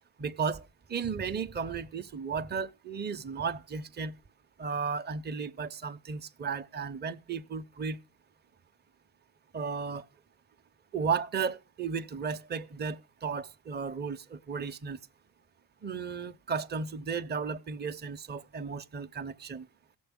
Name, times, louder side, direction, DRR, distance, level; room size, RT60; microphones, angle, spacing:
voice 1, 0.2-4.1 4.6-8.0 9.5-10.0 10.9-15.0 15.8-19.7, right 5 dB, 20° right, 0.6 m, -34 dB
17.0 x 6.8 x 3.6 m
supercardioid pair, 55°, 47 cm